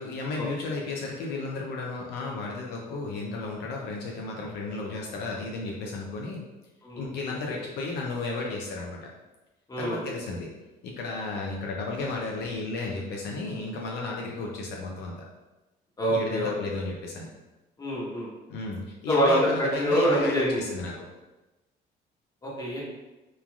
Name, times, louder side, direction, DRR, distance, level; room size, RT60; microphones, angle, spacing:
voice 1, 0.0-6.4 7.0-9.0 9.8-10.5 10.8-15.2 16.1-17.3 18.5-21.1, left 3 dB, 80° left, -1 dB, 0.5 m, -33 dB
voice 2, 16.0-16.5 17.8-18.3 19.1-20.6 22.4-22.8, equal, 20° left, -6 dB, 1.0 m, -25 dB
3.1 x 2.3 x 2.3 m, 1.1 s
cardioid pair, 110°, 17 cm